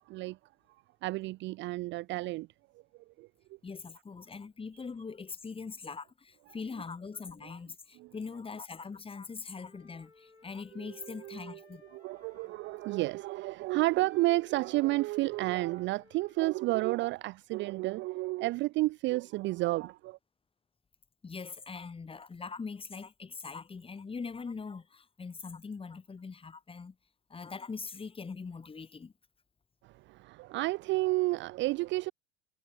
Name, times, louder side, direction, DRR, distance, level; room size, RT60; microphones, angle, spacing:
voice 1, 0.1-0.4 1.0-2.5 3.2-3.3 8.0-8.1 10.7-11.6 11.9-20.2 29.8-32.1, right 20 dB, 35° right, 0.5 m, -31 dB
voice 2, 3.6-11.8 21.2-27.0 27.3-29.1, left 5 dB, 15° left, 1.9 m, -42 dB
Wind instrument woodwind instrument, 9.5-13.1 13.9-16.5, left 4 dB, 90° left, 5.1 m, -60 dB
figure-of-eight pair, 75°, 33 cm